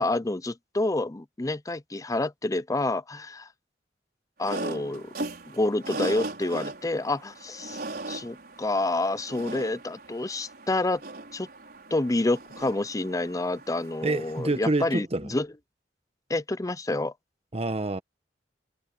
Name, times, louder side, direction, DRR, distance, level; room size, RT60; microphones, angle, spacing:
voice 1, 0.0-3.5 4.4-5.1 5.5-7.8 8.1-11.0 11.3-11.5 11.9-15.5 16.3-17.1, left 2 dB, 20° left, 0.6 m, -28 dB
sound 1, 4.4-14.7, right 2 dB, 60° right, 5.3 m, -39 dB
voice 2, 14.0-15.3 17.5-18.0, right 2 dB, 35° right, 1.2 m, -27 dB
head